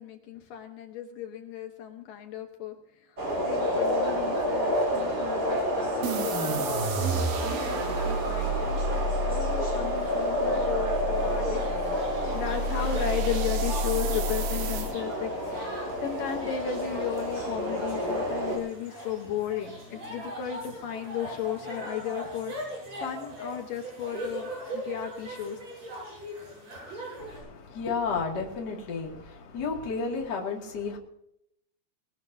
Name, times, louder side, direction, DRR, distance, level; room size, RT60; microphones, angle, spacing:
voice 1, 0.0-11.6 12.1-25.6, left 9 dB, 75° left, 4 dB, 2.7 m, -35 dB
sound 1, 3.2-18.6, equal, 25° right, 4.1 m, -29 dB
sound 2, 6.0-14.9, right 1 dB, 80° right, 3.2 m, -31 dB
sound 3, 8.2-27.4, right 1 dB, 45° right, 9.2 m, -42 dB
voice 2, 27.2-31.0, left 4 dB, 30° left, -1 dB, 2.6 m, -32 dB
21.5 x 18.0 x 2.8 m, 0.76 s
omnidirectional pair, 4.1 m